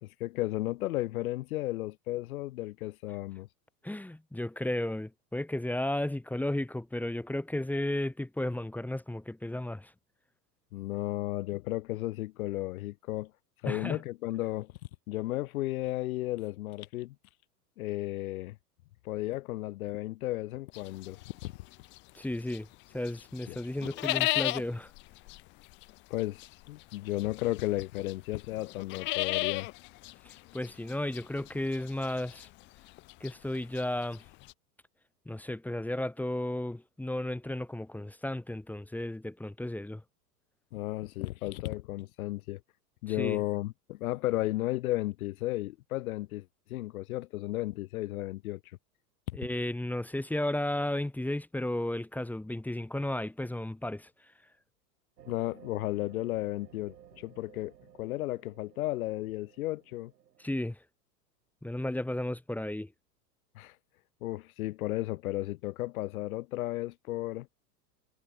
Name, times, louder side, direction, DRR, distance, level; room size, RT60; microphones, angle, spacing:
voice 1, 0.0-3.5 10.7-13.3 13.6-14.7 15.1-17.1 17.8-18.6 19.0-21.5 23.5-23.9 26.1-29.7 40.7-42.6 43.0-48.6 49.3-49.4 55.3-60.1 63.5-63.8 64.2-67.5, left 17 dB, 65° left, 1.0 m, -34 dB
voice 2, 3.8-9.9 13.7-14.0 22.1-22.7 22.9-24.9 30.2-32.5 33.2-34.2 35.3-40.0 43.1-43.4 49.3-54.1 60.4-60.8 61.6-62.9, left 1 dB, 5° left, 1.3 m, -34 dB
sound 1, 20.7-22.7 23.1-34.5, left 22 dB, 25° left, 0.4 m, -35 dB
sound 2, 55.2-60.6, right 9 dB, 75° right, 6.8 m, -56 dB
hypercardioid pair, 100°, 47 cm